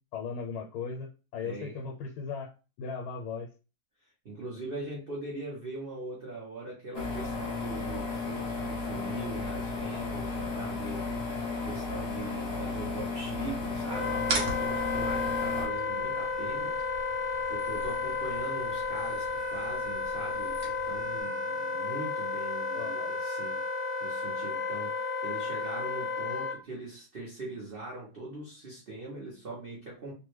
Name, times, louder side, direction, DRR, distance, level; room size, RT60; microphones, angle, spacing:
voice 1, 0.1-2.5 2.8-3.5 22.7-23.1, left 5 dB, 80° left, 1 dB, 1.4 m, -37 dB
voice 2, 1.4-1.8 4.2-11.1 11.6-16.8 17.5-23.6 24.0-30.1, right 2 dB, 85° right, -4 dB, 0.5 m, -41 dB
sound 1, 6.9-15.7, left 3 dB, 50° left, 0.8 m, -34 dB
Wind instrument woodwind instrument, 13.9-26.6, left 4 dB, 35° right, 1.0 m, -32 dB
sound 2, 14.2-21.2, right 3 dB, 60° right, 1.1 m, -40 dB
3.3 x 2.2 x 3.1 m, 0.32 s
omnidirectional pair, 2.3 m